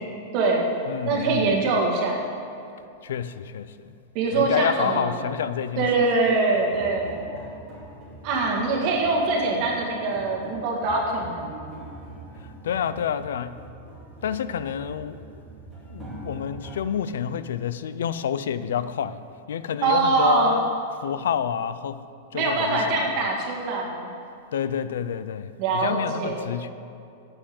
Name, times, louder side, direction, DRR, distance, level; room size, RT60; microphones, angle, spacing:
voice 1, 0.3-0.8 1.0-2.2 4.1-5.1 5.8-7.3 8.2-11.6 19.8-20.6 22.3-24.1 25.6-26.4, right 3 dB, 35° right, 1.9 m, -23 dB
voice 2, 0.9-1.6 3.0-4.0 4.3-5.9 6.2-6.3 12.6-13.6 14.2-15.4 15.9-19.2 19.5-20.8 21.0-22.0 22.3-23.3 24.5-26.7, left 8 dB, 90° left, 0.5 m, -29 dB
sound 1, 6.7-16.8, right 1 dB, 5° right, 2.5 m, -43 dB
8.5 x 7.7 x 7.8 m
supercardioid pair, 175°, 0 cm